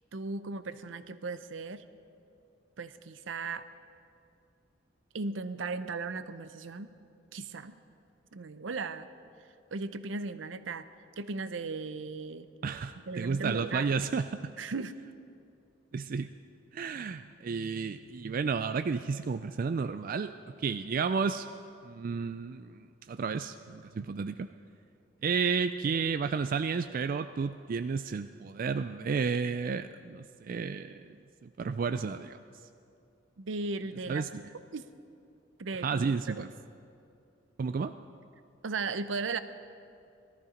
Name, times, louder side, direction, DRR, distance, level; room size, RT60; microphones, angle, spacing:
voice 1, 0.1-1.8 2.8-3.7 5.1-6.9 7.3-7.8 8.3-9.1 9.7-10.9 11.2-12.5 13.1-14.0 14.6-14.9 33.4-34.4 34.7-34.9 35.6-36.5 38.6-39.4, right 3 dB, 80° right, 12 dB, 0.6 m, -36 dB
voice 2, 12.6-14.5 15.9-16.3 16.7-20.3 20.6-21.5 21.8-24.5 25.2-31.0 31.4-32.4 34.1-34.3 35.8-36.5 37.6-37.9, right 5 dB, 45° right, 10 dB, 0.3 m, -32 dB
18.5 x 13.5 x 5.1 m, 2.5 s
head